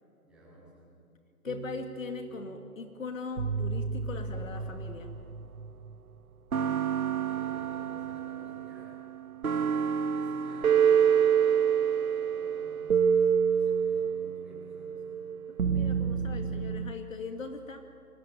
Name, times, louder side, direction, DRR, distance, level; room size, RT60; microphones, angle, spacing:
voice 1, 0.2-0.9 7.0-8.9 10.1-15.1, equal, ahead, -9 dB, 7.9 m, -54 dB
voice 2, 1.4-5.1 15.6-17.8, left 4 dB, 60° left, 5 dB, 2.3 m, -40 dB
sound 1, 1.5-2.7 3.4-5.9 6.5-16.9, right 7 dB, 65° right, 1.3 m, -28 dB
26.5 x 20.5 x 9.2 m, 2.4 s
hypercardioid pair, 165°, 45 cm